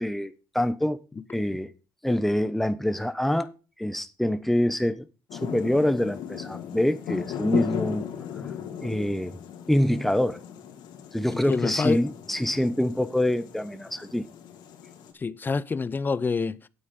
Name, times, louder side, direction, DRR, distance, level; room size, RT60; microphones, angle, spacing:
voice 1, 0.0-1.0 1.3-1.7 2.0-3.5 3.8-5.0 5.3-8.1 8.8-9.4 9.7-10.4 11.1-14.3, left 1 dB, 5° left, 1.1 m, -25 dB
sound 1, 5.3-15.1, left 9 dB, 85° left, 2.6 m, -37 dB
voice 2, 11.3-12.0 15.2-16.6, left 4 dB, 25° left, 0.6 m, -27 dB
9.8 x 8.4 x 5.4 m
cardioid pair, 110°, 7 cm